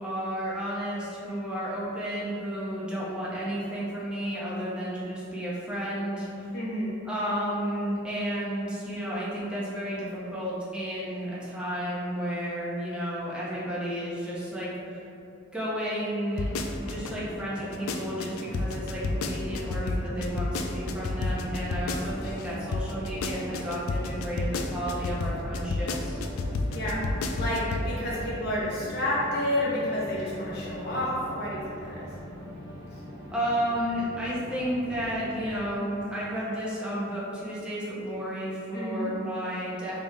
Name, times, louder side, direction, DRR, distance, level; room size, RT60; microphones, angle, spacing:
voice 1, 0.0-6.5 7.1-15.0 15.5-16.5 16.8-26.2 33.3-40.0, equal, 5° right, -8 dB, 0.6 m, -32 dB
voice 2, 6.5-7.0 26.7-32.1 38.7-39.1, left 1 dB, 50° left, -7 dB, 1.0 m, -30 dB
sound 1, 16.3-35.7, equal, 25° right, 1.5 m, -42 dB
sound 2, 16.4-17.1 17.6-22.5 22.7-27.9 28.2-28.3, left 3 dB, 90° left, 0.3 m, -30 dB
3.5 x 3.3 x 2.7 m, 2.8 s
head